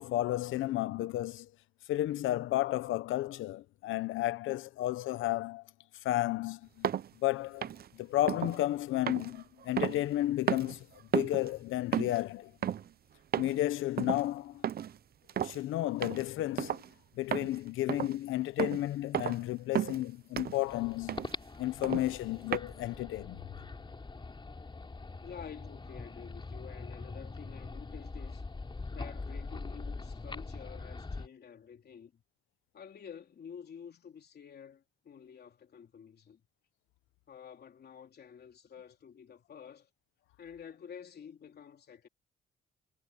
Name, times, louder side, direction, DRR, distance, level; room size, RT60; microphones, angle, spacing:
voice 1, 0.0-1.5 1.9-5.6 6.0-6.9 7.2-10.9 11.1-12.5 13.4-14.6 15.4-16.8 17.1-21.3 21.6-23.4, left 15 dB, 85° left, 0.9 m, -32 dB
sound 1, 6.8-7.1 7.6-7.9 8.3-8.6 9.1-10.2 10.5-10.8 11.1-11.5 11.9-12.2 12.6-12.9 13.3-13.6 14.0-14.2 14.6-15.0 15.3-15.6 16.0-16.2 16.6-16.9 17.3-17.6 17.9-18.2 18.6-18.8 19.1-19.4 19.7-20.0 20.4-20.6 21.1-21.3 21.8-22.1 22.5-22.6, right 9 dB, 50° right, 0.8 m, -33 dB
sound 2, 20.7-31.3, left 3 dB, 25° left, 3.6 m, -43 dB
voice 2, 25.2-28.4 28.9-32.2 32.7-36.4 37.3-39.9 40.4-42.1, left 7 dB, 55° left, 3.4 m, -50 dB
cardioid pair, 90°, 20 cm